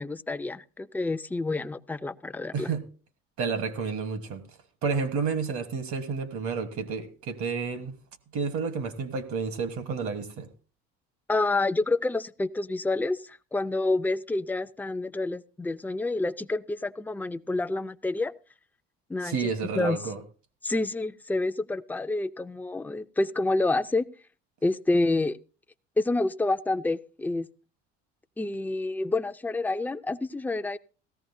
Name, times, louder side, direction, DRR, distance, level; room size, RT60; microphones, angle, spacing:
voice 1, 0.0-2.7 11.3-18.3 19.1-19.5 19.7-20.0 20.6-24.0 24.6-25.4 26.0-27.5 28.4-30.8, left 2 dB, 5° left, 0.5 m, -28 dB
voice 2, 2.5-2.9 3.4-4.4 4.8-8.0 8.3-10.5 19.2-20.2, right 5 dB, 65° right, 1.4 m, -30 dB
17.0 x 14.0 x 2.7 m
supercardioid pair, 75°, 31 cm